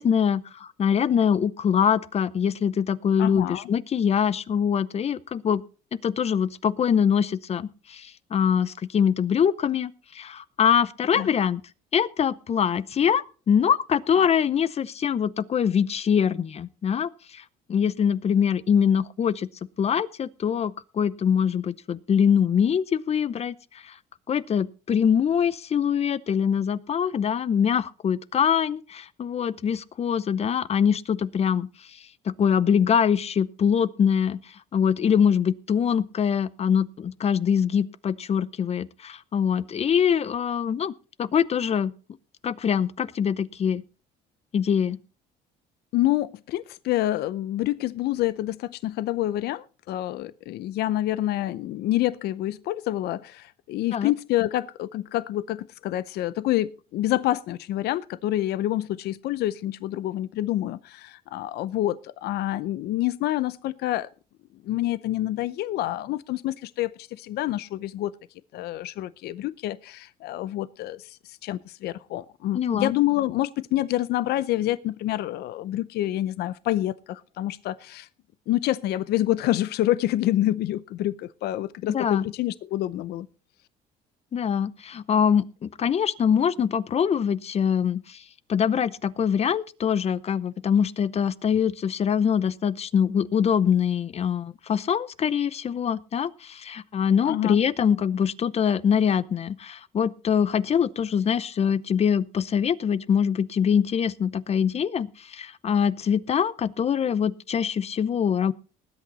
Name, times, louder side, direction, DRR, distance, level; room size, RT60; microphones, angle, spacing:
voice 1, 0.0-5.6 6.0-11.6 11.9-17.4 17.7-19.5 19.8-23.9 24.3-32.0 32.3-34.4 34.7-40.9 41.2-41.9 42.4-43.8 44.5-45.0 53.9-54.1 72.5-72.9 81.9-82.3 84.3-88.2 88.5-108.5, left 7 dB, 40° left, 0.7 m, -24 dB
voice 2, 3.2-3.7 11.1-11.3 45.9-64.1 64.6-68.1 68.5-78.1 78.5-83.3 97.2-97.6, left 14 dB, 75° left, 0.6 m, -27 dB
19.5 x 8.5 x 4.1 m
cardioid pair, 110°, 17 cm